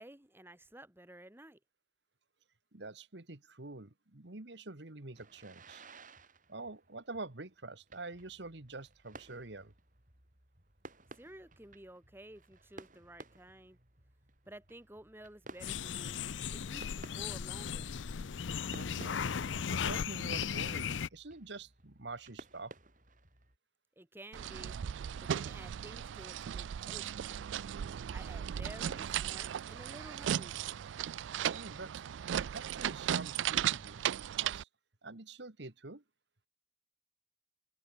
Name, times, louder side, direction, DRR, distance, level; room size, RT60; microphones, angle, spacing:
voice 1, 0.0-1.6 11.2-13.8 14.5-17.9 24.0-24.8 25.2-27.4 28.1-30.6, right 1 dB, 10° right, 2.1 m, -53 dB
voice 2, 2.7-5.8 6.5-9.7 18.7-22.8 31.5-32.0 32.5-34.1 34.4-34.7 35.0-36.0, right 3 dB, 65° right, 1.7 m, -46 dB
sound 1, 5.1-23.6, right 2 dB, 45° right, 7.5 m, -56 dB
sound 2, 15.6-21.1, left 7 dB, 90° left, 0.6 m, -36 dB
sound 3, 24.3-34.6, right 10 dB, 85° right, 0.4 m, -36 dB
head